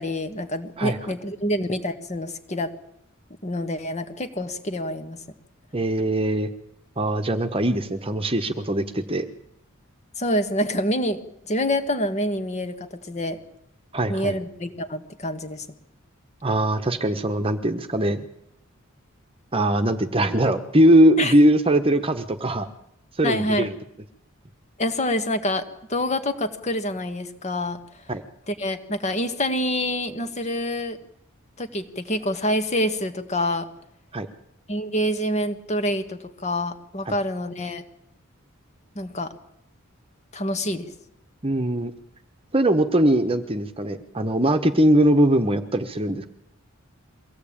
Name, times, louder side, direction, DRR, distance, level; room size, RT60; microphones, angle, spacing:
voice 1, 0.0-2.7 3.4-5.2 10.2-11.2 11.5-13.4 14.1-15.6 21.2-21.3 23.2-23.7 24.8-25.6 25.9-27.8 28.5-31.0 31.6-33.7 34.7-37.8 38.9-39.3 40.3-40.9, left 1 dB, 35° left, 8 dB, 1.7 m, -26 dB
voice 2, 5.7-6.5 7.0-9.2 13.9-14.3 16.4-18.3 19.5-22.7 23.2-23.7 28.1-28.2 34.1-34.3 37.1-37.2 41.4-41.9 42.5-46.3, right 1 dB, 25° right, 8 dB, 1.2 m, -21 dB
23.0 x 16.0 x 8.8 m, 0.77 s
head